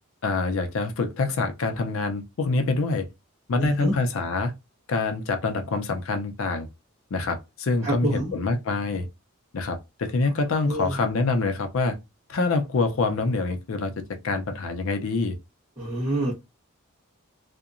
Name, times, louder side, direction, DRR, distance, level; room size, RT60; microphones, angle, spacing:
voice 1, 0.2-3.1 3.5-4.5 4.9-6.7 7.1-9.1 9.5-12.0 12.3-15.4, left 3 dB, 70° left, 0.5 m, -26 dB
voice 2, 3.6-3.9 7.8-8.3 10.7-11.0 15.8-16.3, right 1 dB, 15° right, 1.1 m, -27 dB
2.8 x 2.1 x 2.4 m
head